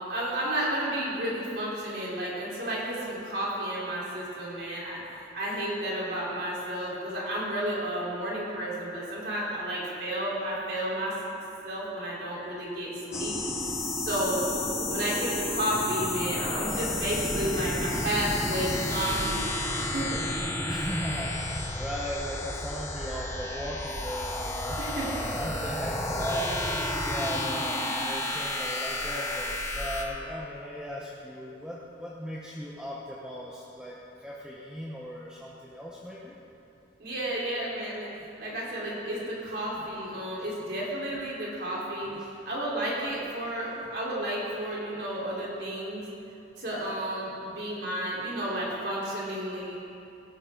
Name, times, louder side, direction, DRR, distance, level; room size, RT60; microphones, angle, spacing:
voice 1, 0.0-5.0 5.3-11.1 11.6-13.3 14.0-14.4 14.9-19.4 19.9-20.2 24.8-25.3 25.6-25.8 27.0-27.2 37.0-38.1 38.4-42.1 42.5-46.0 46.6-49.8, right 1 dB, 60° right, -6 dB, 3.9 m, -32 dB
sound 1, 13.1-30.0, left 1 dB, 15° left, 1.0 m, -31 dB
voice 2, 20.7-36.3 39.8-39.9 42.0-42.3, equal, 5° right, -5 dB, 0.9 m, -38 dB
17.5 x 13.0 x 3.8 m, 2.7 s
head